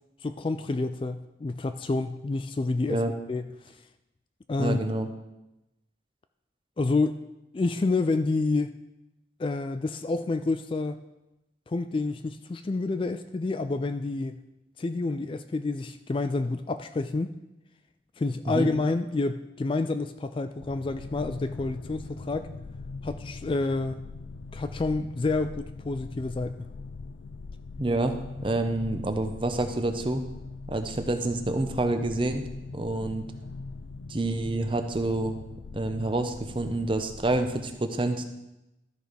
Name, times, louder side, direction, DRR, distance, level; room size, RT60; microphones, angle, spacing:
voice 1, 0.2-3.0 3.3-3.7 4.5-4.8 6.8-7.2 7.5-8.7 9.4-11.0 11.7-14.4 14.8-17.3 18.2-22.5 23.0-24.0 24.5-26.7, left 3 dB, 30° left, 10 dB, 0.3 m, -28 dB
voice 2, 4.6-5.1 18.5-18.7 27.8-28.2 28.4-30.2 30.7-32.4 32.7-33.3 34.1-35.4 35.7-38.3, right 2 dB, 30° right, 7 dB, 0.7 m, -28 dB
sound 1, 20.6-37.8, left 3 dB, 85° left, 0.5 m, -42 dB
13.0 x 4.8 x 5.1 m, 0.93 s
head